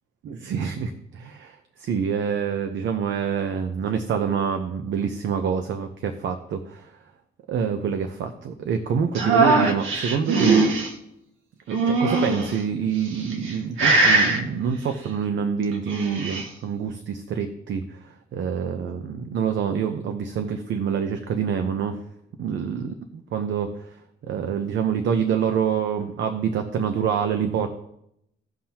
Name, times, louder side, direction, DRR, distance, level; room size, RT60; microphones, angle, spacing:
voice 1, 0.3-6.9 7.5-10.7 11.7-22.0 22.4-23.7 24.3-27.7, right 7 dB, 70° right, 7 dB, 0.8 m, -26 dB
sound 1, 9.1-10.9 11.7-12.5 13.2-13.5 13.8-14.4 15.7-16.5, right 3 dB, 85° right, 1.5 m, -20 dB
16.5 x 5.7 x 2.9 m, 0.77 s
cardioid pair, 90°, 20 cm